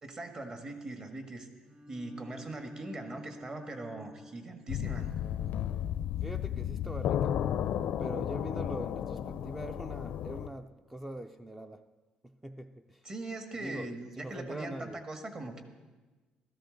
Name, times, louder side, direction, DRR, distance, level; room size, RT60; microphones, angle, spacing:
voice 1, 0.0-1.5 1.9-5.1 13.0-15.6, right 2 dB, 35° right, 1.6 m, -41 dB
Bowed string instrument, 1.6-4.7, left 1 dB, 50° right, 3.7 m, -50 dB
sound 1, 4.7-10.5, left 10 dB, 70° left, 0.5 m, -33 dB
voice 2, 6.1-7.4 8.0-11.9 12.2-13.0 13.6-15.0, right 1 dB, 5° right, 0.4 m, -43 dB
15.5 x 13.5 x 3.9 m
cardioid pair, 110°, 3 cm